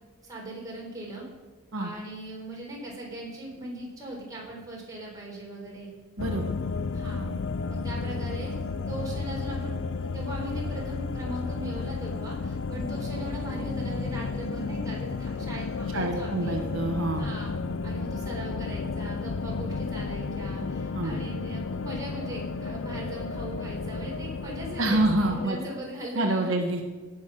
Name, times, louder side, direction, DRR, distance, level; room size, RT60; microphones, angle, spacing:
voice 1, 0.2-1.2 1.7-5.9 6.9-7.3 7.7-16.6 17.2-17.5 17.8-26.6, right 1 dB, 15° right, -4 dB, 3.9 m, -39 dB
sound 1, 6.2-25.5, left 4 dB, 65° left, 0.4 m, -32 dB
voice 2, 6.2-6.5 15.9-17.3 20.9-21.1 24.8-25.6 26.1-26.8, right 2 dB, 70° right, 2 dB, 1.2 m, -26 dB
17.5 x 6.3 x 6.1 m, 1.4 s
head